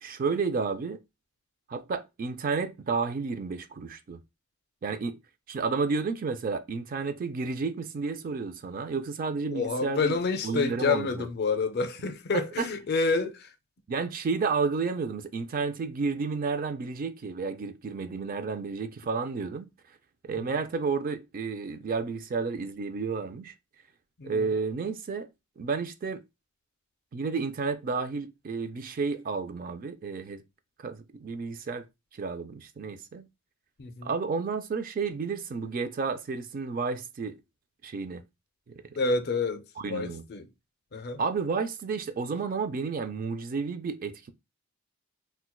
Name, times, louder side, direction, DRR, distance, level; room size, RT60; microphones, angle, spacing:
voice 1, 0.0-1.0 1.7-4.2 4.8-5.2 5.5-10.2 10.4-11.3 12.3-12.7 13.9-19.7 20.2-23.5 24.2-25.3 25.6-26.2 27.1-30.4 30.8-31.9 32.1-33.3 34.0-37.4 37.8-38.2 39.8-40.2 41.2-44.3, right 4 dB, 40° right, 0.3 m, -31 dB
voice 2, 9.5-13.5 24.2-24.5 33.8-34.1 39.0-40.5 40.9-41.2, left 4 dB, 45° left, 0.4 m, -28 dB
4.3 x 2.2 x 2.2 m
head